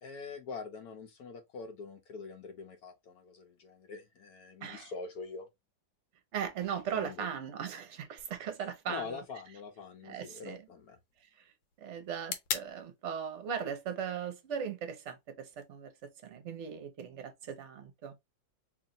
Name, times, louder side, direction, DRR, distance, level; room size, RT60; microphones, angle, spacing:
voice 1, 0.0-5.5 6.9-7.3 8.9-11.0, left 4 dB, 65° left, 1.1 m, -44 dB
voice 2, 4.6-4.9 6.3-9.2 10.0-10.6 11.4-11.5 11.8-15.9 16.2-18.1, right 7 dB, 55° right, 0.9 m, -38 dB
sound 1, 8.2-16.2, left 8 dB, 85° left, 1.5 m, -46 dB
3.1 x 2.8 x 3.8 m
omnidirectional pair, 2.0 m